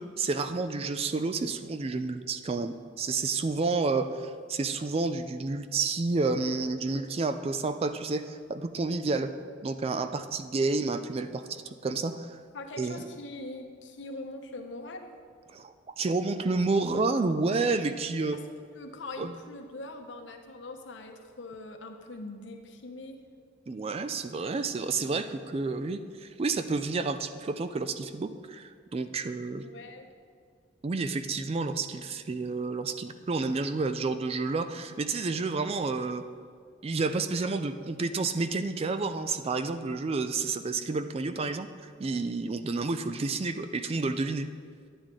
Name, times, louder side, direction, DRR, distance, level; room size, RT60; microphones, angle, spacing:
voice 1, 0.0-9.3 9.6-12.4 12.8-13.0 15.5-18.4 19.2-19.4 23.7-29.6 30.8-36.2 36.8-44.5, right 3 dB, 30° right, 10 dB, 0.4 m, -30 dB
voice 2, 12.5-15.1 18.3-18.4 18.7-23.2 29.6-30.1, left 2 dB, 75° left, 4 dB, 0.9 m, -42 dB
10.5 x 9.1 x 3.7 m, 2.1 s
head